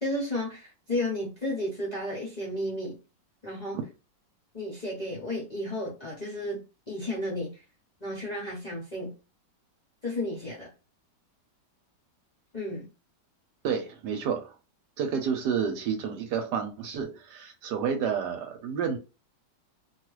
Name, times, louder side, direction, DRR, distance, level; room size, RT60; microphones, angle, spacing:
voice 1, 0.0-3.0 3.4-3.8 4.5-6.6 6.9-7.6 8.0-9.1 10.0-10.7 12.5-12.9, left 1 dB, 35° left, 0.7 m, -33 dB
voice 2, 13.6-14.5 15.0-19.0, right 7 dB, 75° right, 1.2 m, -30 dB
2.9 x 2.3 x 3.1 m
omnidirectional pair, 1.9 m